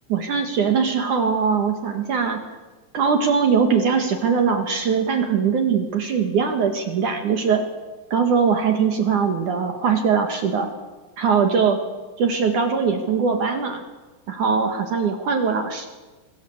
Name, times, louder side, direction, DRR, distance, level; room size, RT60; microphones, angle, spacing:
voice 1, 0.1-2.4 2.9-7.6 8.1-10.7 11.2-11.8 12.2-13.8 14.3-15.9, right 6 dB, 55° right, 5 dB, 2.5 m, -21 dB
24.5 x 21.5 x 8.1 m, 1.2 s
omnidirectional pair, 5.7 m